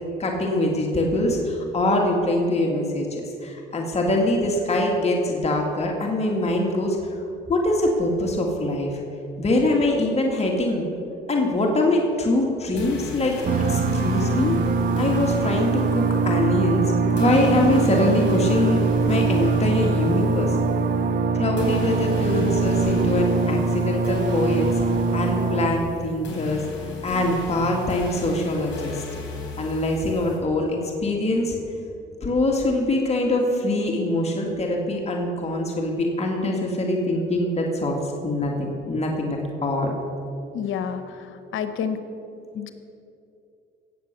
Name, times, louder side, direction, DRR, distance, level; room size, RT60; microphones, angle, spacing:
voice 1, 0.2-7.0 7.5-9.0 9.4-10.9 11.3-13.3 13.7-14.6 15.0-20.6 21.3-24.8 25.1-26.6 27.0-29.0 29.6-31.6 32.2-39.9, left 1 dB, 30° left, 0 dB, 2.2 m, -23 dB
sound 1, 12.8-30.4, left 3 dB, 65° left, 4.0 m, -36 dB
sound 2, 13.4-25.7, right 4 dB, 55° right, 1.1 m, -22 dB
voice 2, 40.5-42.0 42.5-42.7, left 7 dB, 80° left, 9 dB, 1.0 m, -29 dB
17.5 x 7.6 x 6.8 m, 2.6 s
cardioid pair, 90°, 20 cm